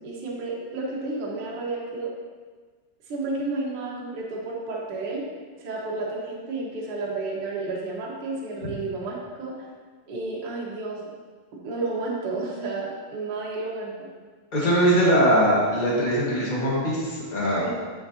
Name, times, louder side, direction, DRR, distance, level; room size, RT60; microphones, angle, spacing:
voice 1, 0.0-2.1 3.1-5.2 5.6-9.6 10.1-11.1 11.6-14.1 17.6-17.7, right 3 dB, 50° right, -4 dB, 2.0 m, -31 dB
voice 2, 14.5-17.7, equal, 30° left, -6 dB, 0.8 m, -21 dB
9.8 x 6.8 x 2.8 m, 1.5 s
omnidirectional pair, 4.0 m